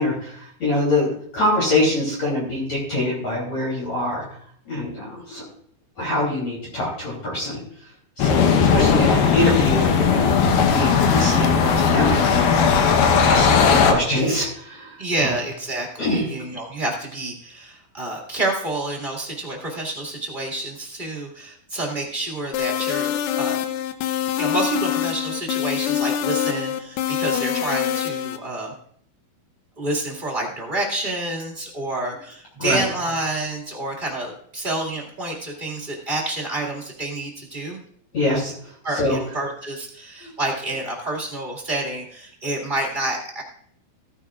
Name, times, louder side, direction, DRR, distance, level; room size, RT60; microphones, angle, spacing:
voice 1, 0.0-4.2 4.7-5.4 6.0-7.6 8.2-12.8 13.2-15.4 16.0-16.3 32.6-32.8 38.1-39.2 40.2-40.3, left 1 dB, 45° left, -4 dB, 4.1 m, -24 dB
sound 1, 8.2-13.9, left 6 dB, 70° left, 2.2 m, -17 dB
voice 2, 15.0-23.6 24.4-28.7 29.8-37.8 38.8-43.4, right 2 dB, 25° right, -2 dB, 1.1 m, -28 dB
sound 2, 22.5-28.4, left 10 dB, 85° left, 2.7 m, -24 dB
16.0 x 9.9 x 2.4 m, 0.62 s
omnidirectional pair, 4.5 m